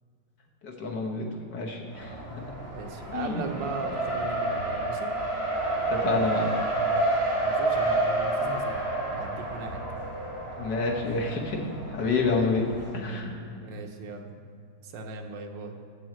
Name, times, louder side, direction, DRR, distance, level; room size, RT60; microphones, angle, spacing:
voice 1, 0.6-2.4 3.1-3.4 5.9-6.5 10.6-11.6 11.9-12.7 12.9-13.3, left 3 dB, 70° left, 0 dB, 1.8 m, -28 dB
Race car auto racing, 1.9-12.9, right 2 dB, 10° right, 2.2 m, -30 dB
voice 2, 2.7-5.1 7.4-8.8 9.1-9.8 12.6-12.8 13.6-14.3 14.8-15.7, right 3 dB, 85° right, 4 dB, 1.6 m, -38 dB
7.7 x 6.3 x 7.5 m, 2.4 s
omnidirectional pair, 2.0 m